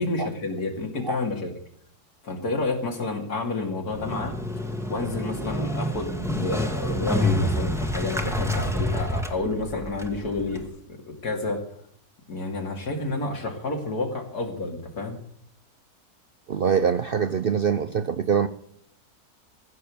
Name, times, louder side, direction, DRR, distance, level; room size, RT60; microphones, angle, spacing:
voice 1, 0.0-1.5 2.2-4.4 4.9-10.6 11.1-11.6 12.3-15.2, left 2 dB, 75° left, 2 dB, 3.0 m, -29 dB
Motorcycle, 3.9-10.7, left 1 dB, ahead, 1.4 m, -28 dB
voice 2, 16.5-18.5, right 7 dB, 60° right, 12 dB, 0.5 m, -24 dB
15.5 x 6.9 x 8.3 m, 0.67 s
omnidirectional pair, 1.6 m